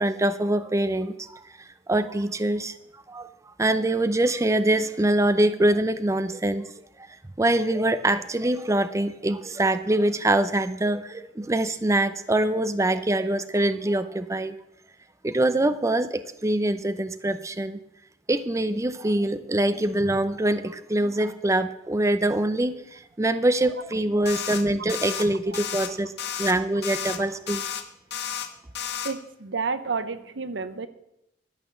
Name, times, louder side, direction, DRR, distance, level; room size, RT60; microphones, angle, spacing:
voice 1, 0.0-1.4 1.9-2.8 3.1-3.3 3.6-6.7 7.4-14.5 15.2-17.8 18.3-26.1 26.4-27.6, right 1 dB, 15° right, 11 dB, 0.5 m, -24 dB
sound 1, 24.3-24.6 24.9-25.2 25.5-25.9 26.2-26.5 26.8-27.2 27.5-27.8 28.1-28.5 28.8-29.1, left 9 dB, 65° left, 1.2 m, -32 dB
voice 2, 29.0-30.9, right 4 dB, 80° right, 12 dB, 0.9 m, -30 dB
12.5 x 8.4 x 7.0 m, 0.83 s
head